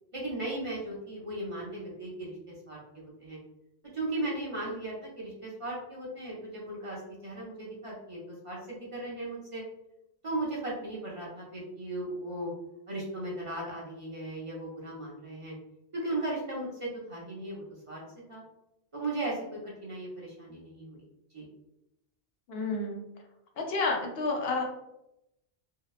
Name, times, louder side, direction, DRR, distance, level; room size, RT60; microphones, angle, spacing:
voice 1, 0.1-2.4 2.7-3.4 3.8-8.2 8.4-9.6 10.2-12.5 12.9-15.5 15.9-18.0 18.3-18.4 18.9-21.0 21.3-21.5, right 2 dB, 35° right, -5 dB, 0.6 m, -37 dB
voice 2, 22.5-23.0 23.6-24.6, left 3 dB, 65° left, 1 dB, 0.8 m, -30 dB
2.7 x 2.1 x 2.3 m, 0.86 s
omnidirectional pair, 1.2 m